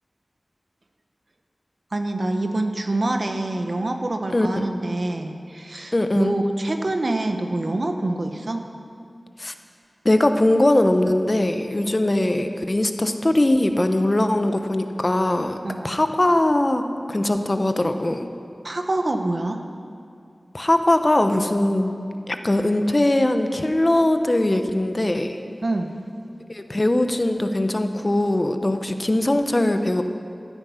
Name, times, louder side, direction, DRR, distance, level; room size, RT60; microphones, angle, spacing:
voice 1, 1.9-8.7 15.6-16.0 18.6-19.7 25.6-26.0, right 2 dB, 60° right, 5 dB, 1.1 m, -26 dB
voice 2, 4.3-4.7 5.9-6.3 9.4-9.5 10.0-15.6 15.8-16.8 17.1-18.3 20.5-21.9 22.3-25.4 26.5-30.0, left 1 dB, 35° left, 7 dB, 1.0 m, -21 dB
15.0 x 13.0 x 5.8 m, 2.4 s
wide cardioid pair, 50°, 0 cm